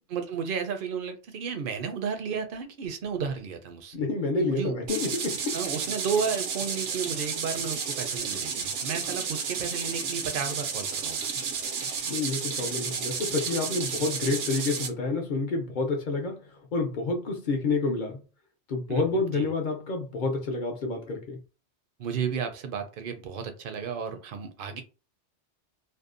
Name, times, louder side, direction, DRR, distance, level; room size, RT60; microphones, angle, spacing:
voice 1, 0.1-4.0 4.4-4.8 5.5-11.2 18.9-19.5 22.0-24.8, right 6 dB, 60° right, 0.6 m, -33 dB
voice 2, 3.9-5.6 12.1-18.2 18.7-21.4, left 3 dB, 55° left, 0.6 m, -29 dB
sound 1, 4.9-14.9, right 6 dB, 90° right, 0.9 m, -32 dB
2.6 x 2.0 x 2.4 m
omnidirectional pair, 1.2 m